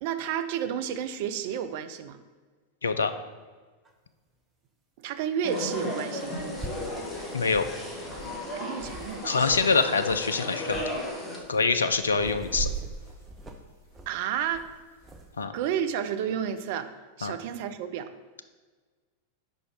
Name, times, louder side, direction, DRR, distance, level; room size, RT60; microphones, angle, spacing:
voice 1, 0.0-2.2 5.0-6.4 8.6-9.5 14.1-14.7 15.5-16.9 17.2-18.1, right 9 dB, 50° right, 10 dB, 0.4 m, -31 dB
sound 1, 3.9-4.0 5.8-5.9 6.2-9.7 10.0-10.3 10.7-10.9 11.4-15.3, right 3 dB, 15° right, 0.7 m, -41 dB
sound 2, 5.4-11.4, left 1 dB, 15° left, 1.7 m, -35 dB
voice 2, 7.3-7.7 9.2-11.0 11.5-12.7 15.4-15.5 17.2-17.3, left 4 dB, 70° left, 9 dB, 0.4 m, -25 dB
5.2 x 4.4 x 4.9 m, 1.4 s
figure-of-eight pair, 90°, 0 cm